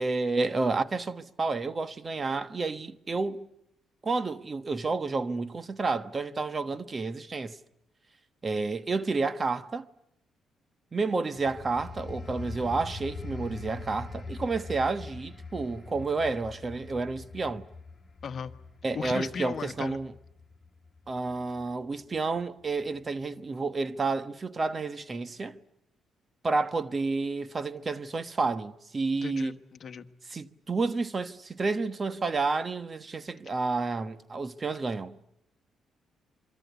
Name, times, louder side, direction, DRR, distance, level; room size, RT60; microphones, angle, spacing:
voice 1, 0.0-3.5 4.0-7.6 8.4-9.9 10.9-17.7 18.8-20.1 21.1-25.6 26.4-29.6 30.3-35.1, right 3 dB, 30° right, 1.2 m, -30 dB
sound 1, 11.3-21.7 22.1-22.4, left 3 dB, 20° left, 4.2 m, -43 dB
voice 2, 18.2-18.5 18.9-20.0 29.1-30.1, left 6 dB, 50° left, 1.4 m, -37 dB
27.0 x 24.5 x 8.2 m
cardioid pair, 90°, 0 cm